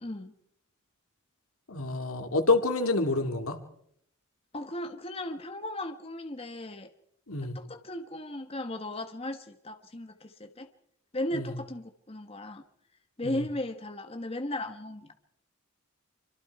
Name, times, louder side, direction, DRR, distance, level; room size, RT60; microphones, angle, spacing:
voice 1, 0.0-0.3 4.5-6.9 7.4-10.7 11.1-12.6 13.2-15.1, left 1 dB, 25° left, 6 dB, 1.3 m, -36 dB
voice 2, 1.7-3.6 7.3-7.6 11.3-11.4, left 3 dB, 85° left, 5 dB, 2.6 m, -27 dB
26.0 x 24.5 x 4.8 m, 0.73 s
head